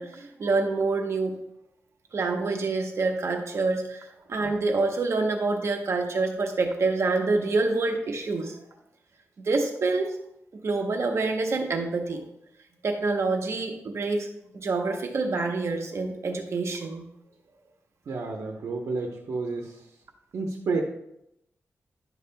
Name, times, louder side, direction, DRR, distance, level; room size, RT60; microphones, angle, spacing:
voice 1, 0.0-1.3 2.1-8.6 9.4-10.2 10.6-12.2 12.8-14.3 14.5-17.0, right 3 dB, 60° right, 3 dB, 1.0 m, -27 dB
voice 2, 18.1-19.9 20.3-20.8, right 3 dB, 85° right, 2 dB, 0.9 m, -30 dB
11.0 x 7.0 x 2.3 m, 0.81 s
wide cardioid pair, 110°, 5 cm